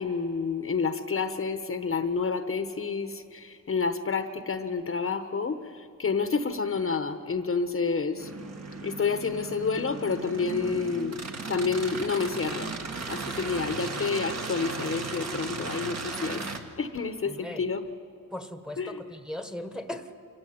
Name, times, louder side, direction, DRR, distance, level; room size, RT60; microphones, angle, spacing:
voice 1, 0.0-8.3 8.8-12.7 13.1-16.4 16.8-17.9 18.8-19.0, left 5 dB, 40° left, 8 dB, 1.0 m, -29 dB
sound 1, 8.2-16.6, right 4 dB, 50° right, 1.9 m, -36 dB
voice 2, 17.3-17.6 18.3-20.2, left 1 dB, ahead, 8 dB, 1.3 m, -38 dB
25.0 x 14.5 x 9.4 m, 2.6 s
cardioid pair, 100°, 35 cm